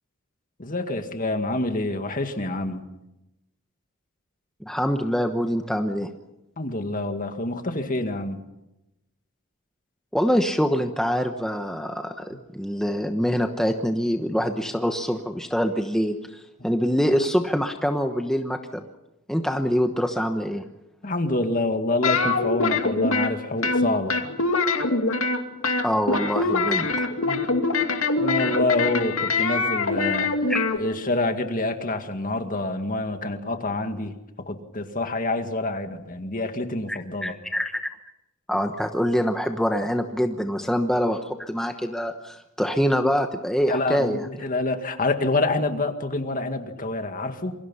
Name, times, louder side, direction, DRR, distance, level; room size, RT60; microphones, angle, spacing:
voice 1, 0.6-2.8 6.6-8.4 21.0-24.2 27.2-27.4 28.2-34.2 34.5-37.3 43.7-47.5, left 2 dB, 40° left, 6 dB, 2.1 m, -27 dB
voice 2, 4.6-6.1 10.1-18.8 19.3-20.6 25.8-26.9 30.5-30.6 36.9-37.9 38.5-44.3, equal, ahead, 5 dB, 1.1 m, -25 dB
sound 1, 22.0-23.3 23.6-25.4 25.6-30.8, left 3 dB, 65° left, 2.6 m, -23 dB
27.5 x 24.0 x 5.7 m, 0.93 s
head